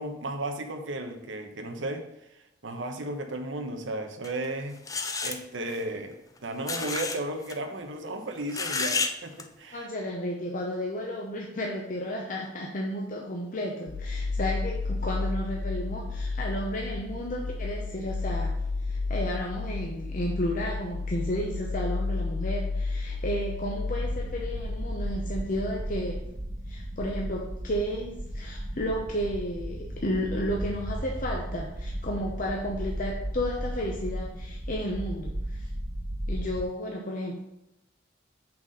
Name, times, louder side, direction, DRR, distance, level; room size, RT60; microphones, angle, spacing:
voice 1, 0.0-2.1 2.3-4.8 5.2-9.9, right 1 dB, 90° right, 5 dB, 1.0 m, -34 dB
sound 1, 4.2-4.4 4.9-5.4 6.6-7.2 7.4-7.5 8.5-9.1 9.4-9.5, left 4 dB, 20° left, 0.4 m, -30 dB
voice 2, 9.7-18.6 18.8-26.2 26.7-35.7 36.3-37.4, equal, 45° left, -1 dB, 0.8 m, -32 dB
sound 2, 13.9-25.0, left 3 dB, 85° left, 0.5 m, -32 dB
sound 3, 24.0-36.6, equal, 60° right, 2.0 m, -35 dB
5.9 x 4.1 x 6.3 m, 0.86 s
head